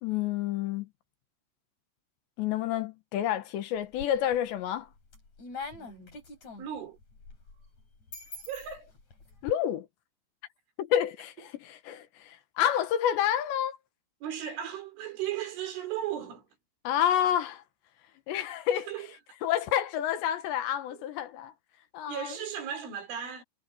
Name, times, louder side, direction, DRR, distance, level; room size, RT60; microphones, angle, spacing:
voice 1, 0.0-0.9 2.4-4.9 9.4-9.9 10.8-13.8 16.9-17.6 18.3-18.9 19.4-21.5 21.9-22.3, left 10 dB, 75° left, 3.6 m, -29 dB
sound 1, 3.8-4.5 4.9-9.5, left 3 dB, 35° left, 7.4 m, -44 dB
voice 2, 5.8-6.2 6.6-7.0 8.5-8.9 14.2-16.5 18.9-19.1 20.9-21.0 22.1-23.4, right 10 dB, 90° right, 6.5 m, -36 dB
omnidirectional pair, 5.3 m